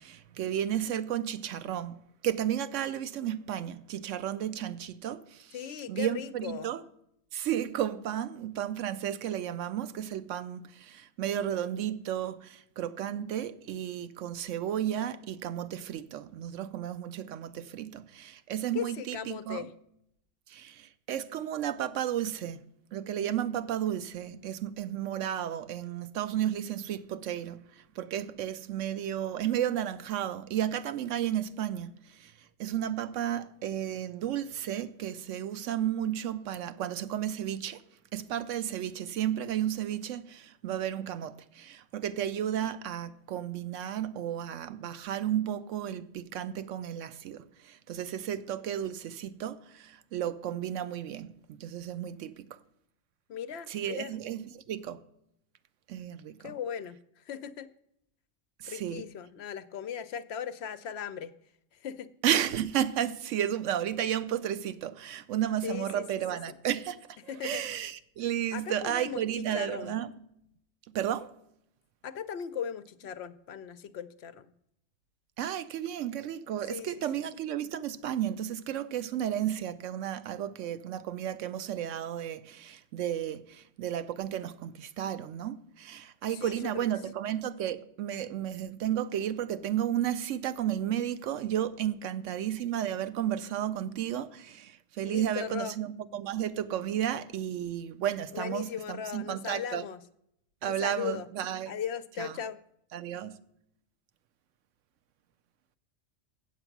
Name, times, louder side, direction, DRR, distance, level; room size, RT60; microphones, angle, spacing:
voice 1, 0.0-5.6 5.9-6.8 7.3-19.7 20.5-22.6 22.9-32.3 32.6-37.8 38.1-52.6 53.7-55.0 55.9-56.6 58.6-59.1 62.2-70.2 70.9-71.3 75.4-99.8 100.6-101.7 102.2-102.3 102.9-103.4, right 10 dB, 85° right, 1.0 m, -33 dB
voice 2, 5.5-6.7 18.7-19.7 53.3-54.1 56.4-57.7 58.7-61.3 61.7-62.1 65.6-66.0 67.3-67.6 68.5-69.9 72.0-74.5 76.7-76.9 86.3-86.9 95.0-95.7 98.3-100.0 100.6-101.3 101.7-102.6, left 8 dB, 65° left, 0.8 m, -38 dB
7.9 x 7.7 x 5.9 m
omnidirectional pair, 1.3 m